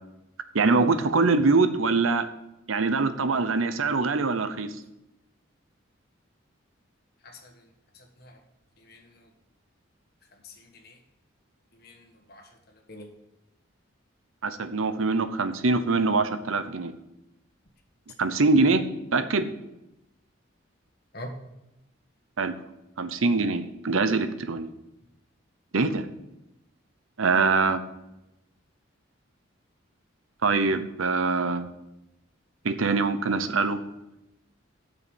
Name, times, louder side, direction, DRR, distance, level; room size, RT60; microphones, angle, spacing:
voice 1, 0.5-2.3 2.7-4.7 14.4-16.9 18.2-18.8 19.1-19.5 22.4-22.5 23.0-24.7 25.7-26.1 27.2-27.8 30.4-31.7 32.6-33.8, right 3 dB, 85° right, 11 dB, 0.8 m, -23 dB
voice 2, 7.9-8.4 8.8-9.3 10.4-11.0 11.8-12.5 12.9-13.1 21.1-21.3, left 1 dB, 50° left, 4 dB, 1.6 m, -45 dB
8.3 x 6.9 x 7.2 m, 0.90 s
head